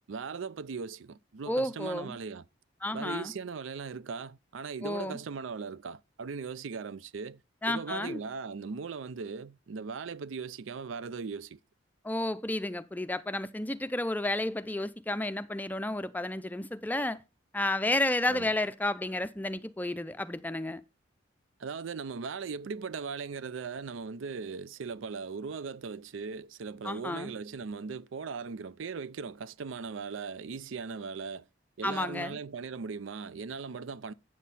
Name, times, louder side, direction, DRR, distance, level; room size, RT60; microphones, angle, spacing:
voice 1, 0.1-2.4 2.9-7.4 7.7-11.6 18.3-18.5 21.6-31.5 31.8-34.1, right 5 dB, 90° right, 0.5 m, -39 dB
voice 2, 1.5-2.2 2.8-3.3 4.8-5.2 7.6-8.2 12.0-17.2 17.5-20.8 26.8-27.3 31.8-32.4, left 1 dB, 10° left, 0.4 m, -31 dB
9.1 x 7.4 x 4.1 m
head